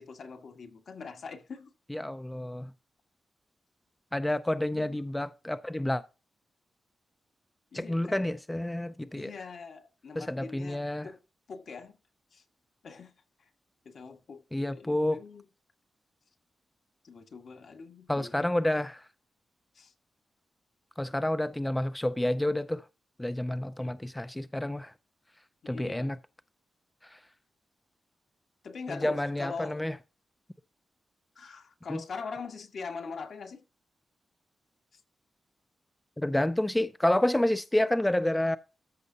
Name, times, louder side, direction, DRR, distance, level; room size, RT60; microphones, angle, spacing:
voice 1, 0.0-1.7 4.7-5.0 7.7-8.2 9.1-11.2 11.5-11.9 12.3-12.4 12.8-13.1 13.4-13.5 13.8-15.5 17.0-18.5 19.7-19.9 23.8-23.9 25.6-26.1 28.6-29.8 31.3-33.6 34.9-35.0, left 5 dB, 65° left, 1.6 m, -43 dB
voice 2, 1.9-2.7 4.1-6.0 7.7-9.3 10.2-11.1 14.5-15.2 18.1-19.0 21.0-22.8 23.2-24.9 25.7-26.2 27.1-27.2 28.9-29.9 31.9-32.0 36.2-38.6, left 1 dB, 10° left, 0.4 m, -29 dB
13.5 x 6.4 x 2.8 m
wide cardioid pair, 110°, 0 cm